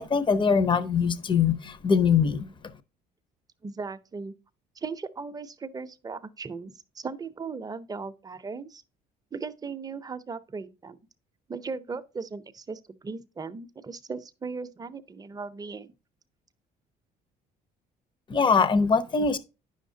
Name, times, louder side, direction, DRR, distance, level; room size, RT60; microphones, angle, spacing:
voice 1, 0.0-2.5 18.3-19.4, left 5 dB, 30° left, 0.7 m, -22 dB
voice 2, 3.6-4.3 4.8-8.8 9.3-11.0 11.5-15.9, right 4 dB, 20° right, 0.6 m, -37 dB
9.7 x 6.4 x 2.7 m
cardioid pair, 110°, 17 cm